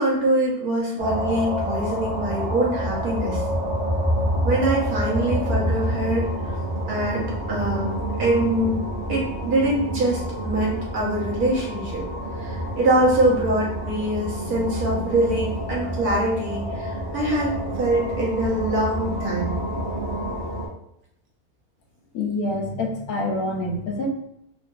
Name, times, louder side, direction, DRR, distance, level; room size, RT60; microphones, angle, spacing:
voice 1, 0.0-3.4 4.4-6.3 6.9-8.8 9.1-12.0 12.4-19.6, right 1 dB, 75° right, -4 dB, 1.4 m, -24 dB
sound 1, 1.0-20.7, equal, 55° right, 0.9 m, -28 dB
voice 2, 22.1-24.1, left 2 dB, 75° left, 0 dB, 1.1 m, -26 dB
3.7 x 2.4 x 2.4 m, 0.78 s
omnidirectional pair, 1.6 m